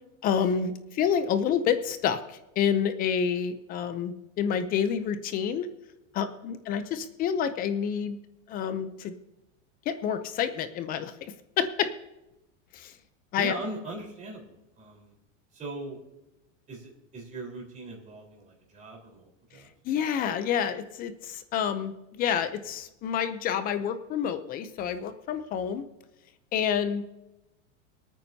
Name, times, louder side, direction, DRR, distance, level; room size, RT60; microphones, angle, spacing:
voice 1, 0.2-5.7 6.1-8.2 8.5-9.1 9.9-11.1 11.6-11.9 12.7-12.9 13.3-13.5 19.8-25.8 26.5-27.0, left 8 dB, 25° left, 11 dB, 0.6 m, -28 dB
voice 2, 13.4-15.1 15.5-16.0 16.7-19.7, right 2 dB, 20° right, -1 dB, 4.1 m, -40 dB
23.5 x 9.1 x 2.8 m, 0.93 s
supercardioid pair, 165°, 38 cm